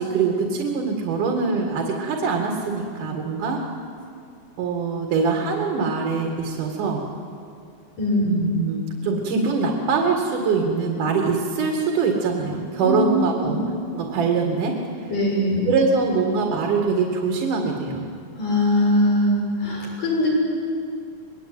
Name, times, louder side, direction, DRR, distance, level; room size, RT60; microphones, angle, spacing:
voice 1, 0.0-3.6 4.6-7.0 8.2-13.6 13.9-14.8 15.0-15.1 15.7-18.1, right 4 dB, 75° right, 1 dB, 3.6 m, -23 dB
voice 2, 15.1-15.7 18.4-20.3, left 1 dB, 75° left, -3 dB, 8.6 m, -21 dB
25.5 x 21.0 x 9.3 m, 2.4 s
omnidirectional pair, 3.8 m